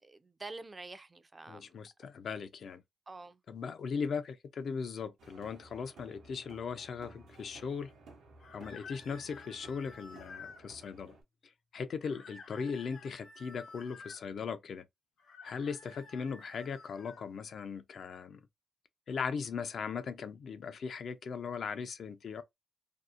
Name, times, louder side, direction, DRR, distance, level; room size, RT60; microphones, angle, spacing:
voice 1, 0.0-1.7 3.1-3.4, right 3 dB, 30° right, 0.3 m, -47 dB
voice 2, 1.5-2.8 3.5-7.9 8.5-11.2 11.7-14.8 15.4-18.4 19.1-22.4, left 6 dB, 65° left, 0.3 m, -38 dB
sound 1, 5.2-11.2, right 3 dB, 90° right, 0.6 m, -56 dB
Piano, 6.3-11.9, left 1 dB, 55° right, 0.7 m, -69 dB
sound 2, 8.4-10.6 12.0-14.2 15.2-17.2, left 4 dB, 85° left, 0.8 m, -52 dB
2.6 x 2.0 x 2.4 m
cardioid pair, 90°, 0 cm